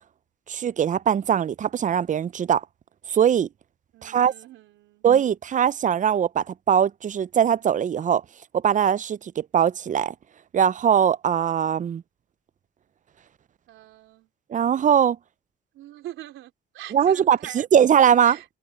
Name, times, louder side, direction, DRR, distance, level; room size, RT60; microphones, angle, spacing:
voice 1, 0.5-2.6 3.1-3.5 4.0-4.3 5.0-8.2 8.5-10.1 10.5-12.0 14.5-15.2 16.9-18.4, right 8 dB, 40° right, 0.5 m, -21 dB
voice 2, 3.9-5.0 13.7-14.3 15.7-17.7 18.2-18.5, right 14 dB, 85° right, 3.9 m, -43 dB
cardioid pair, 90°, 20 cm